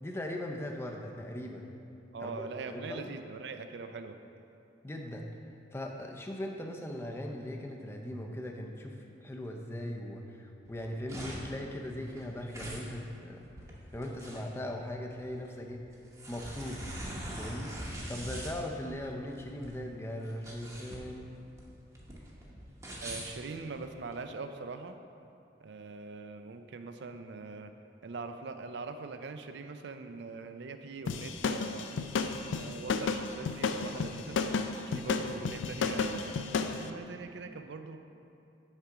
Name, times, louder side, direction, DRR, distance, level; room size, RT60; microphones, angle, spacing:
voice 1, 0.0-1.7 2.2-3.1 4.8-5.3 5.7-13.4 13.9-15.8 16.3-16.8 17.3-17.7 18.1-21.3, left 1 dB, 10° left, 2 dB, 0.5 m, -39 dB
voice 2, 2.1-4.2 23.0-25.0 25.6-27.7 28.0-31.9 32.5-34.4 34.9-36.4 36.7-38.0, right 4 dB, 60° right, 8 dB, 0.4 m, -42 dB
sound 1, 10.7-24.2, right 1 dB, 15° right, 0.8 m, -43 dB
sound 2, 31.1-36.8, left 5 dB, 70° left, 0.4 m, -32 dB
6.5 x 4.8 x 5.9 m, 2.7 s
head